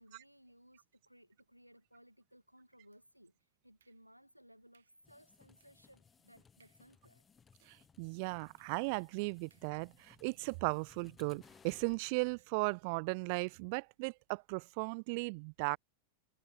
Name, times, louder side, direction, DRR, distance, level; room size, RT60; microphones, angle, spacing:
voice 1, 0.0-7.2, equal, 90° right, 4.3 m, -62 dB
sound 1, 2.9-3.3 3.8-4.3 4.7-5.1 5.6-5.9 6.2-6.3 6.6-7.0 7.4-10.9 11.4-11.7 12.4-13.0 13.4-13.6 14.3-14.6, right 8 dB, 65° right, 4.3 m, -77 dB
sound 2, 5.0-12.0, left 6 dB, 20° left, 1.5 m, -64 dB
voice 2, 7.7-15.8, right 32 dB, 45° right, 0.3 m, -37 dB
figure-of-eight pair, 90°, 0 cm